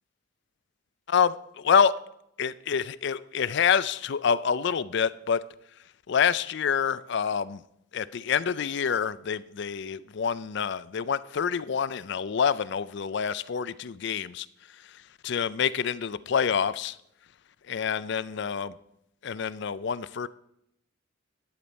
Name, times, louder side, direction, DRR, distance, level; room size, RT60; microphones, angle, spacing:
voice 1, 1.1-1.9 2.4-5.4 6.1-7.6 7.9-14.5 14.8-17.0 17.7-18.8 19.2-20.3, left 7 dB, 60° left, 17 dB, 0.4 m, -27 dB
11.5 x 8.7 x 4.1 m, 0.77 s
head